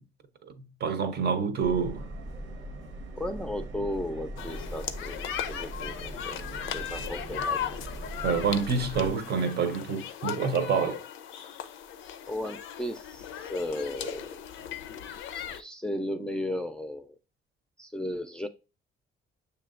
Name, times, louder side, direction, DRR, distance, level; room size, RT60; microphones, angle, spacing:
voice 1, 0.8-2.1 8.2-11.0, right 5 dB, 55° right, 0.6 m, -27 dB
Subway metro underground, 1.6-9.1, right 1 dB, 85° right, 1.0 m, -40 dB
voice 2, 3.2-7.6 12.3-14.4 15.3-17.1 17.8-18.5, left 1 dB, 5° left, 0.4 m, -35 dB
sound 1, 4.4-15.6, left 9 dB, 80° left, 0.5 m, -37 dB
6.6 x 2.7 x 2.4 m
cardioid pair, 90°, 20 cm